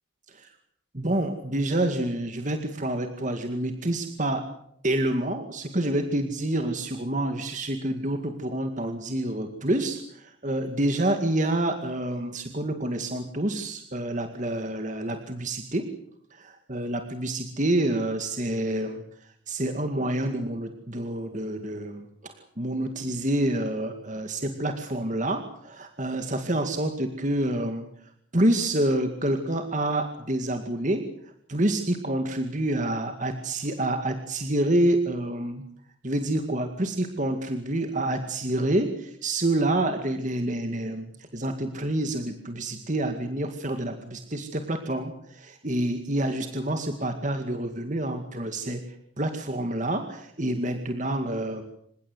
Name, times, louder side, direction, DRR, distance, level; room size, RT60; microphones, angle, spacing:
voice 1, 0.9-4.4 4.8-15.8 16.3-19.0 19.5-27.9 28.3-31.0 31.5-35.6 36.0-48.8 49.2-51.6, right 1 dB, 40° right, 6 dB, 2.1 m, -28 dB
28.0 x 16.5 x 8.0 m, 0.69 s
head